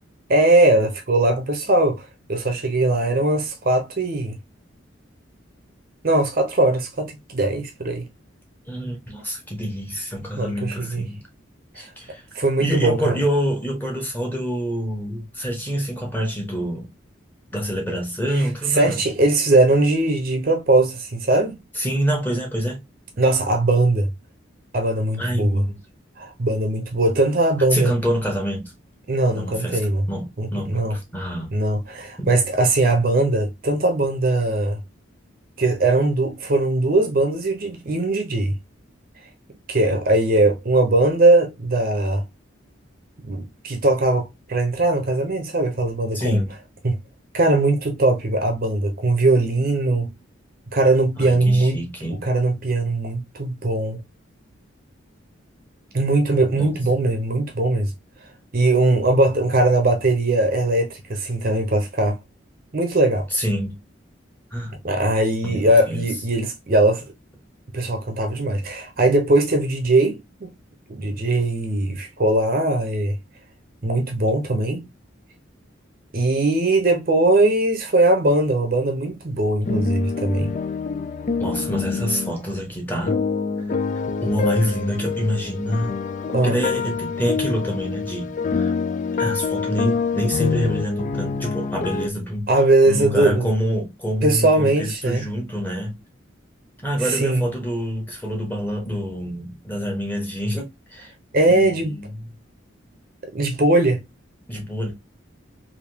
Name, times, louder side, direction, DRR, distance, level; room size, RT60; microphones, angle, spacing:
voice 1, 0.3-4.3 6.0-8.0 10.4-11.0 11.8-11.9 12.3-13.2 18.7-21.5 23.2-24.1 24.7-25.6 26.2-27.9 29.1-30.0 30.4-31.0 31.5-34.8 35.6-38.6 39.7-42.2 43.2-46.4 46.8-47.0 47.3-50.1 50.7-51.8 52.2-54.0 55.9-57.9 58.5-62.2 62.7-63.3 64.8-67.0 67.7-70.5 70.9-73.2 73.8-74.8 76.1-80.5 86.3-86.6 92.5-93.5 94.2-95.3 97.0-97.4 101.3-101.9 103.3-104.0, right 2 dB, 45° right, 0.7 m, -20 dB
voice 2, 8.7-11.2 11.7-12.2 12.6-16.9 17.5-19.0 21.7-22.8 25.2-25.8 27.7-28.7 29.3-29.8 30.1-31.5 32.2-32.3 46.1-46.5 51.2-52.2 56.5-56.8 63.3-63.7 64.5-64.7 65.4-66.0 81.4-83.2 84.2-85.9 86.4-88.7 89.2-92.5 92.9-96.0 96.8-100.6 100.9-101.1 101.5-102.3 104.5-104.9, equal, 10° left, 1.1 m, -26 dB
sound 1, 79.6-82.4 83.0-92.1, left 5 dB, 40° left, 0.3 m, -26 dB
3.4 x 2.7 x 2.7 m
head